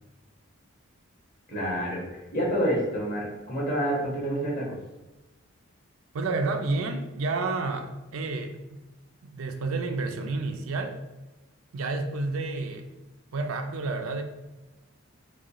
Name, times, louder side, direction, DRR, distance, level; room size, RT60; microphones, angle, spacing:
voice 1, 1.5-2.0 2.3-4.8, equal, 40° left, -6 dB, 1.4 m, -28 dB
voice 2, 6.1-8.9 9.2-11.0 11.7-12.9 13.3-14.2, right 3 dB, 80° right, 5 dB, 0.5 m, -30 dB
4.8 x 2.3 x 3.0 m, 1.0 s
head